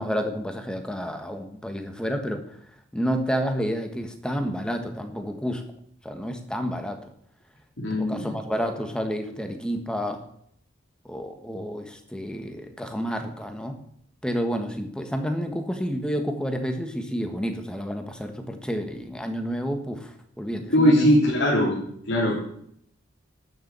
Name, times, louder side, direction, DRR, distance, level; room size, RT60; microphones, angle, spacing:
voice 1, 0.0-2.6 2.9-5.6 6.0-7.0 8.0-10.2 11.0-13.8 14.2-21.1, equal, 5° left, 6 dB, 1.4 m, -30 dB
voice 2, 7.8-8.2 20.7-21.8 22.1-22.3, equal, 70° left, -6 dB, 3.5 m, -20 dB
12.5 x 6.9 x 8.1 m, 0.69 s
head